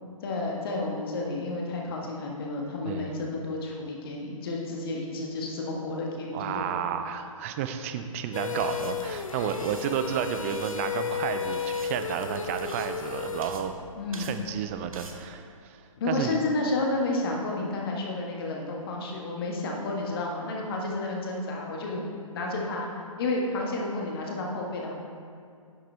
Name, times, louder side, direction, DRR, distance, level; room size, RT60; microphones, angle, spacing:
voice 1, 0.2-6.8 13.9-14.4 16.0-22.0 22.3-22.9 23.2-24.9, left 2 dB, 40° left, -1 dB, 1.7 m, -31 dB
voice 2, 2.8-3.2 6.3-13.8 14.2-16.4, right 8 dB, 25° right, 8 dB, 0.5 m, -32 dB
sound 1, 8.3-13.5, left 6 dB, 70° left, 0.7 m, -33 dB
sound 2, 8.6-15.2, right 3 dB, 75° right, 1.0 m, -47 dB
10.5 x 7.6 x 3.4 m, 2.3 s
figure-of-eight pair, 135°, 18 cm